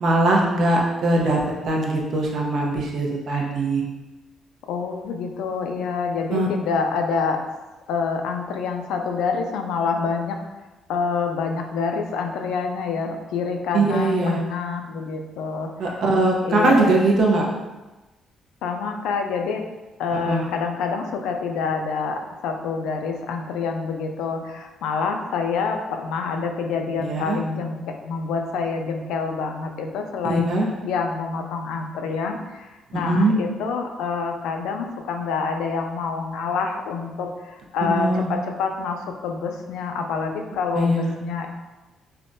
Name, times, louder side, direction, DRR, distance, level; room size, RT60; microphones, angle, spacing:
voice 1, 0.0-3.8 6.3-6.5 13.7-14.4 15.8-17.5 20.2-20.5 27.0-27.4 30.2-30.7 33.1-33.3 37.9-38.3 40.8-41.1, right 2 dB, 65° right, -1 dB, 0.6 m, -21 dB
voice 2, 4.7-7.4 7.9-10.4 10.9-15.7 16.4-17.0 18.6-19.7 20.0-41.5, left 5 dB, 90° left, 4 dB, 0.3 m, -27 dB
3.3 x 2.1 x 2.6 m, 1.1 s
cardioid pair, 90°, 0 cm